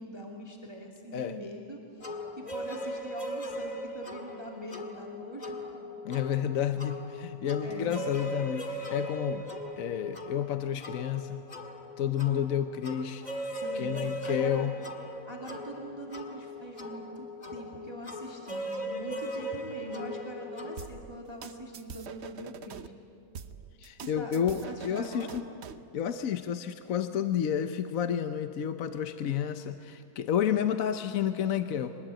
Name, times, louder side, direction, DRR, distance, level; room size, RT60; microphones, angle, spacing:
voice 1, 0.0-5.9 7.6-8.0 13.5-14.7 15.3-17.3 17.5-22.9 24.0-25.4, equal, 15° right, 0 dB, 2.3 m, -43 dB
sound 1, 2.0-20.9, equal, 25° left, 1.9 m, -39 dB
voice 2, 6.0-9.5 9.8-11.4 12.0-13.3 13.7-14.8 23.8-25.4 25.9-32.0, left 9 dB, 60° left, 9 dB, 1.1 m, -30 dB
sound 2, 20.8-22.9 23.3-25.9, right 7 dB, 50° right, 0.8 m, -44 dB
23.5 x 20.0 x 9.0 m, 2.8 s
omnidirectional pair, 1.9 m